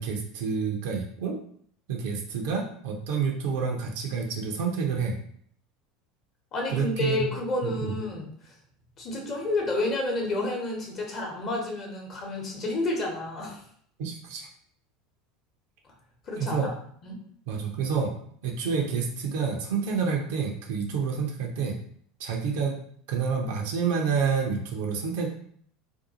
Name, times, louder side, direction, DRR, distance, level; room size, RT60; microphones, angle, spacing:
voice 1, 0.0-1.4 1.9-5.1 6.7-7.3 7.6-8.0 14.0-14.5 16.4-16.7 17.5-18.1 18.4-21.8 22.2-22.7 23.1-25.3, right 5 dB, 60° right, 1 dB, 0.5 m, -28 dB
voice 2, 6.5-8.5 9.0-13.6 16.3-16.6 17.0-17.2, left 2 dB, 40° left, 0 dB, 0.9 m, -30 dB
2.6 x 2.3 x 2.7 m, 0.62 s
figure-of-eight pair, 75°, 0 cm